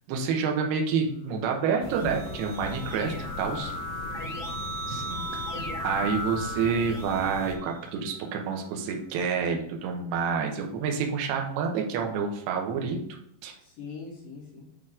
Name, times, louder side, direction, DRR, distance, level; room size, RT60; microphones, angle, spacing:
voice 1, 0.1-3.7 4.9-5.2 5.8-13.0 13.4-13.5, right 6 dB, 75° right, 2 dB, 2.7 m, -28 dB
Keyboard (musical), 1.6-8.3, equal, 30° left, 1.9 m, -37 dB
sound 1, 1.8-7.6, left 4 dB, 85° left, 2.1 m, -40 dB
voice 2, 3.4-4.4 13.6-14.7, left 5 dB, 65° left, -4 dB, 2.8 m, -43 dB
8.7 x 3.0 x 3.7 m, 0.72 s
omnidirectional pair, 5.0 m